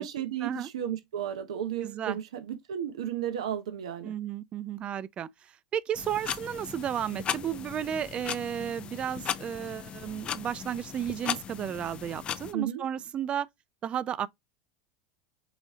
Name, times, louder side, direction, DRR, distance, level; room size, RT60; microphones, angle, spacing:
voice 1, 0.0-4.1 12.5-12.8, right 10 dB, 80° right, 0.7 m, -33 dB
voice 2, 1.8-2.2 4.0-5.3 5.7-13.5 13.8-14.3, right 9 dB, 35° right, 0.4 m, -33 dB
sound 1, 5.9-12.5, left 8 dB, 35° left, 0.5 m, -37 dB
5.0 x 2.7 x 3.6 m
hypercardioid pair, 95°, 3 cm